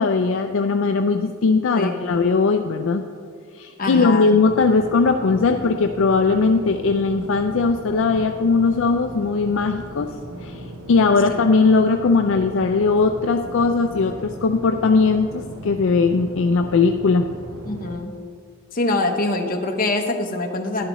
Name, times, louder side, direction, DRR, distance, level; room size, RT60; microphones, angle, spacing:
voice 1, 0.0-3.0 3.5-10.1 10.4-10.6 10.9-17.3, left 4 dB, 60° left, 5 dB, 0.4 m, -19 dB
voice 2, 1.8-2.1 3.8-4.4 11.3-11.4 17.7-18.1 18.7-20.9, left 2 dB, 40° left, 3 dB, 0.9 m, -24 dB
sound 1, 4.4-18.0, right 1 dB, 90° right, 1.0 m, -37 dB
11.5 x 11.0 x 3.1 m, 2.1 s
head